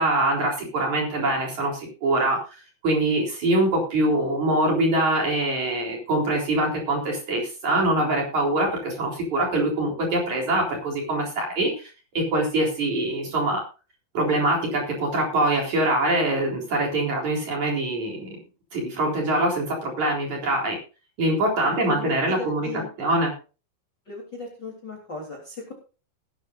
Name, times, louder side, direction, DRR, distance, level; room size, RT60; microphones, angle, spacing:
voice 1, 0.0-2.4 2.8-11.9 12.1-13.6 14.1-18.4 18.7-20.8 21.2-22.7 23.0-23.3, right 1 dB, 40° right, 0 dB, 4.8 m, -24 dB
voice 2, 21.7-22.9 24.1-25.7, left 3 dB, 25° left, -2 dB, 3.5 m, -37 dB
19.0 x 10.5 x 2.6 m, 0.33 s
omnidirectional pair, 5.3 m